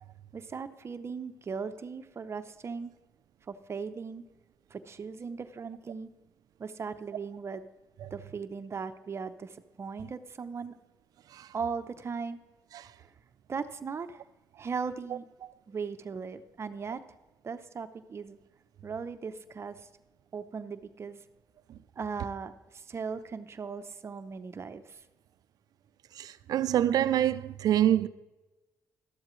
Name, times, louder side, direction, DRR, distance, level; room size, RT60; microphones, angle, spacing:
voice 1, 0.3-2.9 3.5-4.2 4.7-6.1 6.6-7.6 8.1-10.8 11.5-12.4 13.0-13.1 13.5-14.2 14.6-15.2 15.7-17.0 17.4-18.4 18.8-19.9 20.3-21.2 22.0-25.0, right 5 dB, 40° right, 0.7 m, -38 dB
voice 2, 26.2-28.1, right 11 dB, 75° right, 0.5 m, -26 dB
13.0 x 12.5 x 3.2 m
cardioid pair, 90°, 7 cm